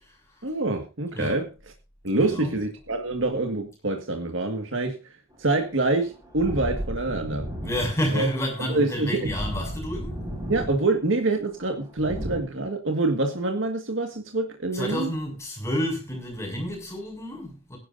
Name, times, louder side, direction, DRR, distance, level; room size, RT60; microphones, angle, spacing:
voice 1, 0.4-1.5 2.0-4.9 5.4-7.5 8.1-8.3 8.7-9.3 10.5-15.1, right 2 dB, 75° right, 1.9 m, -26 dB
voice 2, 2.2-2.5 7.6-10.2 14.7-17.8, equal, 15° left, 6.7 m, -30 dB
sound 1, 5.3-12.4, equal, 20° right, 5.1 m, -35 dB
21.0 x 11.0 x 2.7 m
head